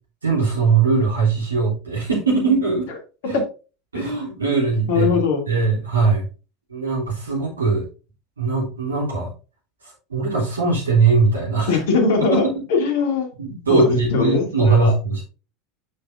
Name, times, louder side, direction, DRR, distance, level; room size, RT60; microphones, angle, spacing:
voice 1, 0.2-2.9 3.3-3.4 3.9-5.1 5.5-6.2 6.7-7.8 8.4-9.3 9.8-11.7 12.3-12.4 13.4-15.2, right 4 dB, 80° right, -3 dB, 3.1 m, -20 dB
voice 2, 4.9-5.4 11.7-12.4 12.7-13.3 13.7-14.9, left 5 dB, 60° left, 4 dB, 2.5 m, -20 dB
8.6 x 6.7 x 2.6 m, 0.33 s
figure-of-eight pair, 75°, 0 cm